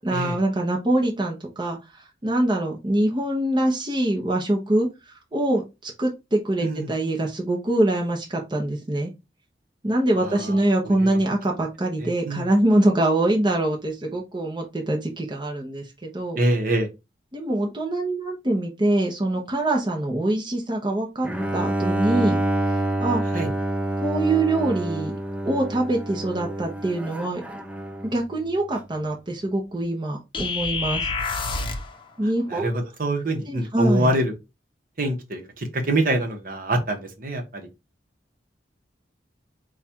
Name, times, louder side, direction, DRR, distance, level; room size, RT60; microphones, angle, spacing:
voice 1, 0.0-1.8 2.2-4.9 5.3-9.1 9.8-16.4 17.3-22.4 23.0-23.2 24.0-25.1 25.4-27.6 28.0-31.1 32.2-32.7 33.5-34.1, right 1 dB, 25° right, 0.9 m, -24 dB
voice 2, 10.2-10.6 10.8-11.2 12.0-12.5 16.4-16.9 23.3-23.5 32.5-34.3 35.0-37.7, right 1 dB, 50° right, 1.1 m, -25 dB
Bowed string instrument, 21.2-28.3, right 1 dB, 5° right, 0.4 m, -27 dB
sound 1, 30.3-32.0, left 4 dB, 30° left, 0.7 m, -27 dB
4.9 x 2.4 x 4.3 m
head